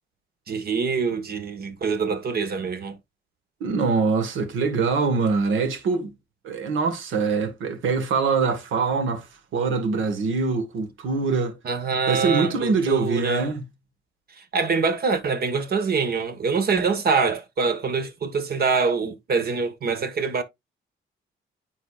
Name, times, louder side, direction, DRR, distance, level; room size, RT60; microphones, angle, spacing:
voice 1, 0.5-3.0 11.6-13.5 14.5-20.4, right 5 dB, 50° right, 1.4 m, -24 dB
voice 2, 3.6-6.1 6.4-9.3 9.5-11.6 12.1-13.6, right 4 dB, 80° right, 1.6 m, -23 dB
9.6 x 4.0 x 2.4 m
cardioid pair, 90°, 20 cm